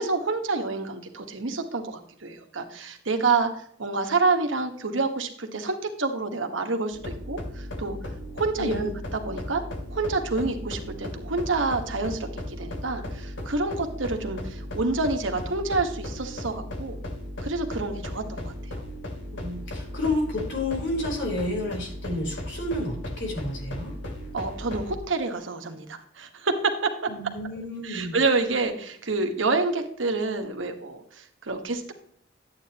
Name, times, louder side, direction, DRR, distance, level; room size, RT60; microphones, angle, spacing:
voice 1, 0.0-3.5 3.8-8.0 8.3-9.6 9.9-17.0 17.4-18.5 24.3-27.1 27.8-31.9, right 3 dB, 85° right, 5 dB, 1.5 m, -28 dB
sound 1, 6.9-25.0, left 1 dB, 85° left, 2.4 m, -36 dB
voice 2, 8.6-8.9 19.3-23.9 27.1-28.1, left 1 dB, 70° left, -1 dB, 3.9 m, -30 dB
11.5 x 8.8 x 2.9 m, 0.62 s
head